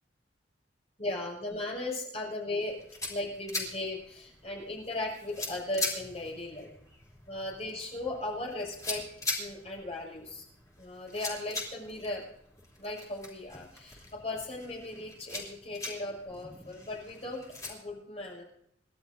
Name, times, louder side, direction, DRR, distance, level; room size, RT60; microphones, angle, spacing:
voice 1, 1.0-2.7 3.1-6.7 7.3-9.0 9.4-10.4 10.8-12.2 12.8-17.4 17.7-18.4, left 2 dB, 35° left, -2 dB, 6.5 m, -37 dB
sound 1, 2.6-17.7, left 2 dB, 20° left, 3.2 m, -41 dB
28.5 x 12.0 x 2.7 m, 0.71 s
head